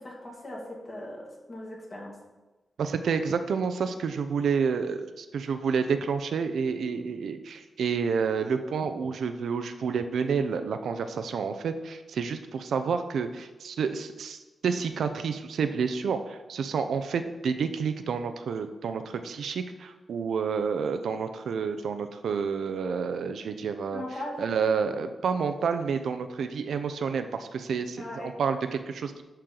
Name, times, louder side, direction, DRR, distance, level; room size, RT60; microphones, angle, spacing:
voice 1, 0.0-2.2 23.9-24.4 28.0-28.3, left 1 dB, 35° left, -2 dB, 2.3 m, -39 dB
voice 2, 2.8-24.0 24.4-29.2, right 6 dB, 90° right, 9 dB, 0.6 m, -29 dB
11.5 x 4.4 x 3.9 m, 1.2 s
wide cardioid pair, 105°, 0 cm